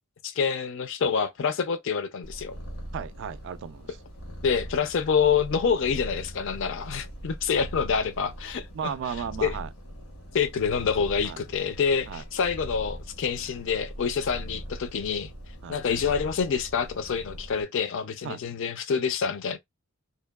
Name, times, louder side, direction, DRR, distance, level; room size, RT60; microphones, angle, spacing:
voice 1, 0.2-2.6 4.4-8.9 9.4-9.5 10.3-15.3 15.7-19.6, left 6 dB, 60° left, 0.4 m, -27 dB
Purr, 2.2-17.6, equal, 80° left, 1.0 m, -41 dB
voice 2, 2.9-4.0 8.7-9.7 11.2-11.4 12.1-12.2 15.6-15.8 18.2-18.4, right 7 dB, 55° right, 0.3 m, -35 dB
2.6 x 2.2 x 2.2 m
head